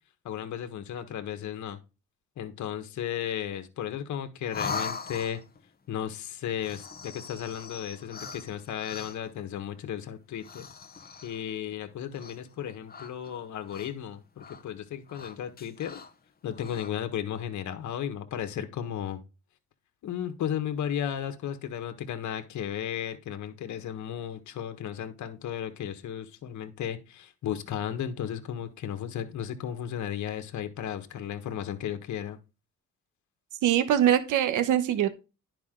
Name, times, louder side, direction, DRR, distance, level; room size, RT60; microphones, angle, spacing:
voice 1, 0.2-1.8 2.4-5.4 5.9-10.7 11.2-16.0 16.4-19.2 20.0-32.4, left 9 dB, 70° left, 7 dB, 1.4 m, -34 dB
sound 1, 4.5-5.6 6.5-9.4 10.4-11.5 12.1-12.6 12.9-14.1 14.4-14.6 15.1-16.1 16.5-16.9, left 5 dB, 30° left, 1.0 m, -40 dB
voice 2, 33.6-35.1, right 11 dB, 85° right, 11 dB, 1.1 m, -23 dB
10.5 x 5.4 x 3.8 m, 0.29 s
cardioid pair, 90°, 30 cm